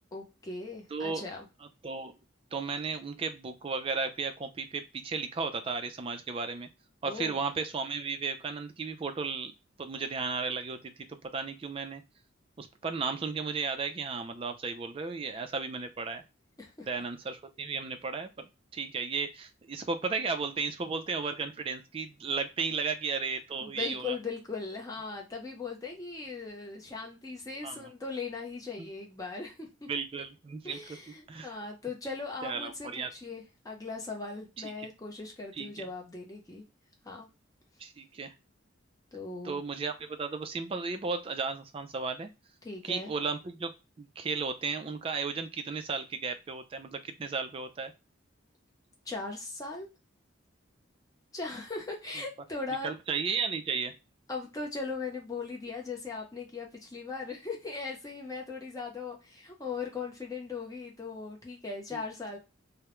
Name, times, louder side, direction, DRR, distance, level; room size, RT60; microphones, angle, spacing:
voice 1, 0.1-1.5 7.1-7.4 16.6-16.9 23.6-29.9 30.6-36.6 37.0-37.3 39.1-39.6 42.6-43.1 49.1-49.9 51.3-52.9 54.3-62.4, left 4 dB, 15° left, -1 dB, 0.6 m, -39 dB
voice 2, 0.9-1.2 1.8-2.1 2.5-6.7 7.0-9.5 9.8-12.0 12.6-16.2 16.9-24.2 27.6-27.9 28.8-28.9 29.9-31.0 31.3-31.5 32.4-33.1 34.8-34.9 35.5-35.9 37.8-38.3 39.4-42.3 42.8-43.7 44.0-47.9 52.8-53.9 61.9-62.0, right 4 dB, 25° right, 8 dB, 0.3 m, -34 dB
2.2 x 2.0 x 2.9 m, 0.28 s
head